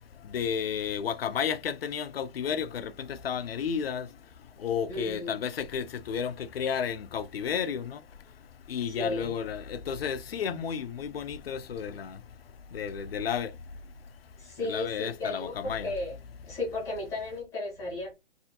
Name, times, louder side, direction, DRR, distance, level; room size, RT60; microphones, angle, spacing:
voice 1, 0.3-4.1 4.6-8.0 8.7-12.2 12.7-13.5 14.6-15.9, left 7 dB, 55° left, 0.6 m, -32 dB
voice 2, 4.9-5.3 8.9-9.3 14.4-16.2 16.5-18.1, left 2 dB, 10° left, 1.0 m, -35 dB
3.4 x 2.7 x 2.7 m
hypercardioid pair, 150°, 36 cm